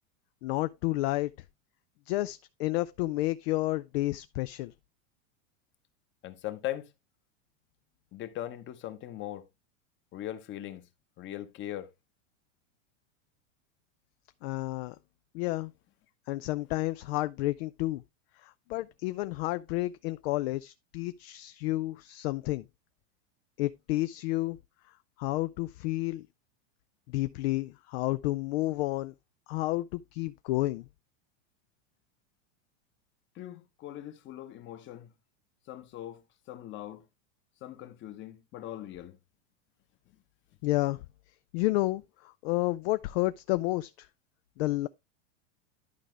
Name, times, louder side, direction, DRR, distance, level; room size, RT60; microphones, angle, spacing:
voice 1, 0.4-1.3 2.1-4.7 14.4-15.0 15.3-15.7 16.3-18.0 18.4-22.6 23.6-24.6 25.2-26.2 27.1-29.1 29.5-30.9 40.6-41.0 41.5-44.1 44.6-44.9, left 18 dB, 55° left, 0.4 m, -30 dB
voice 2, 6.2-6.9 8.1-9.4 10.1-10.8 11.2-11.9 33.4-35.1 35.7-36.2 36.5-37.0 37.6-39.2, left 13 dB, 30° left, 1.0 m, -40 dB
11.5 x 4.8 x 3.2 m
supercardioid pair, 145°, 38 cm